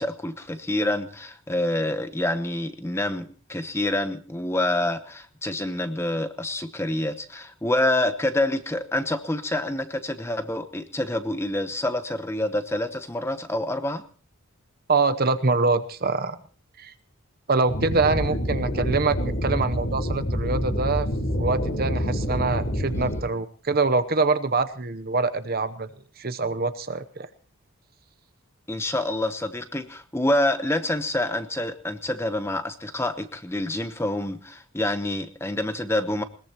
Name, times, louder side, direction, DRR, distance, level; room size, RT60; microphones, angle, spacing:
voice 1, 0.0-14.0 18.2-18.4 28.7-36.2, left 1 dB, 10° left, 10 dB, 0.9 m, -27 dB
voice 2, 14.9-16.4 16.8-16.9 17.5-21.1 21.4-25.9 26.2-27.3, right 3 dB, 45° right, 11 dB, 0.8 m, -24 dB
sound 1, 17.7-23.2, equal, 60° left, 5.1 m, -27 dB
21.0 x 20.5 x 3.0 m, 0.38 s
head